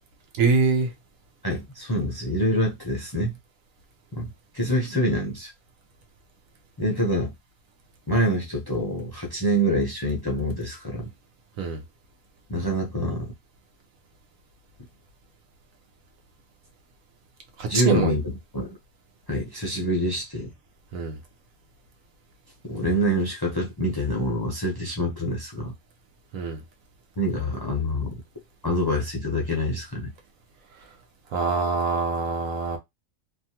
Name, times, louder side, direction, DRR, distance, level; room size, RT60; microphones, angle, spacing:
voice 1, 0.4-0.9 11.6-11.8 17.6-18.1 20.9-21.2 26.3-26.6 31.3-32.8, right 4 dB, 85° right, 1.0 m, -24 dB
voice 2, 1.4-3.4 4.1-5.5 6.8-7.3 8.1-11.1 12.5-13.3 17.7-18.7 19.3-20.5 22.6-25.7 27.2-28.2 28.6-30.1, equal, 40° left, 0.3 m, -26 dB
2.6 x 2.2 x 2.8 m
omnidirectional pair, 1.4 m